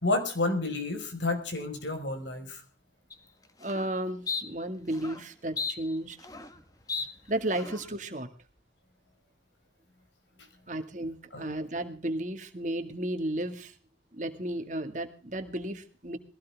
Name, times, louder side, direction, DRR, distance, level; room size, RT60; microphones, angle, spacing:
voice 1, 0.0-2.6 11.3-11.6, left 2 dB, 85° left, 6 dB, 5.1 m, -30 dB
sound 1, 3.1-3.2 3.6-3.9 4.3-4.4 4.9-5.2 5.6-6.6 6.9-7.1 7.5-7.9, left 4 dB, 20° left, 1.5 m, -35 dB
voice 2, 3.6-6.2 7.3-8.3 10.7-13.7 14.1-16.2, right 1 dB, 40° right, 7 dB, 2.1 m, -33 dB
21.5 x 17.0 x 3.6 m, 0.40 s
head